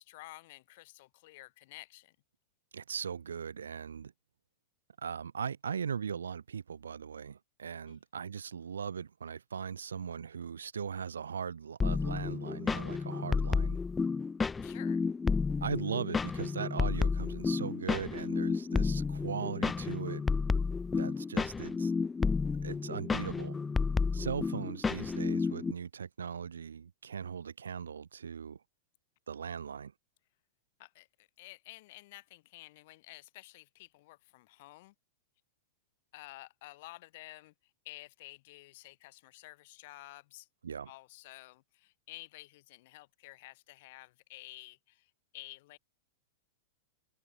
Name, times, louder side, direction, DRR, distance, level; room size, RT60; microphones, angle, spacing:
voice 1, 0.0-2.2 7.9-8.0 14.6-15.0 30.8-34.9 36.1-37.5 37.8-40.5 40.9-45.8, left 20 dB, 55° left, 2.7 m, -51 dB
voice 2, 2.7-4.1 5.0-13.8 15.6-20.2 21.0-21.9 22.6-23.6 24.1-28.6 29.3-29.9 40.6-40.9, right 7 dB, 80° right, 3.5 m, -39 dB
sound 1, 11.8-25.7, left 4 dB, 15° left, 0.4 m, -31 dB
hypercardioid pair, 100°, 0 cm